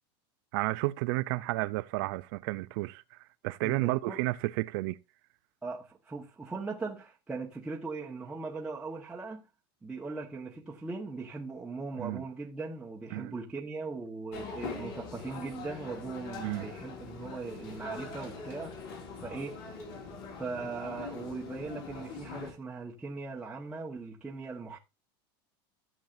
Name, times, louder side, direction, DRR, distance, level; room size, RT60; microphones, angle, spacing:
voice 1, 0.5-5.0 12.0-12.2 13.1-13.3 16.4-16.7, right 21 dB, 60° right, 0.4 m, -32 dB
voice 2, 3.6-4.2 5.6-9.4 9.8-19.6 20.4-24.8, right 4 dB, 10° right, 1.2 m, -39 dB
sound 1, 14.3-22.5, left 4 dB, 65° left, 4.2 m, -42 dB
15.0 x 7.3 x 2.6 m
supercardioid pair, 155°, 13 cm